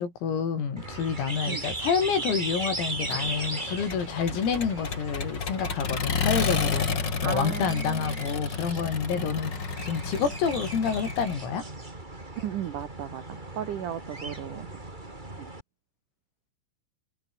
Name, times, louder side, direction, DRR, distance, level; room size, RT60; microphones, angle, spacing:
voice 1, 0.0-11.7, left 6 dB, 90° left, 8.6 m, -28 dB
sound 1, 0.8-15.6, right 2 dB, 10° right, 2.6 m, -38 dB
Accelerating revving vroom, 3.1-11.4, left 5 dB, 40° left, 1.7 m, -32 dB
voice 2, 7.2-8.2 9.1-9.3 10.1-10.2 12.4-13.2 13.5-14.7 15.4-15.5, right 10 dB, 85° right, 1.8 m, -35 dB
omnidirectional pair, 5.9 m